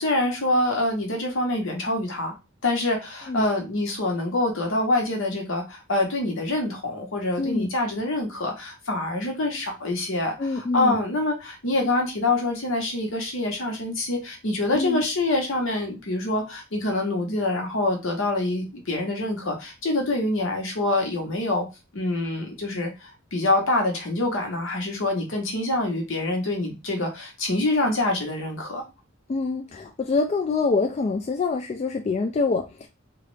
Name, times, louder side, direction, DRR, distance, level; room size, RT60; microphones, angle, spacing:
voice 1, 0.0-2.3 2.6-21.7 21.9-28.8, left 2 dB, 65° left, 2 dB, 1.0 m, -26 dB
voice 2, 7.4-7.7 10.4-11.0 14.7-15.0 29.3-32.9, left 3 dB, 35° left, 4 dB, 0.3 m, -25 dB
3.0 x 2.4 x 3.2 m, 0.26 s
head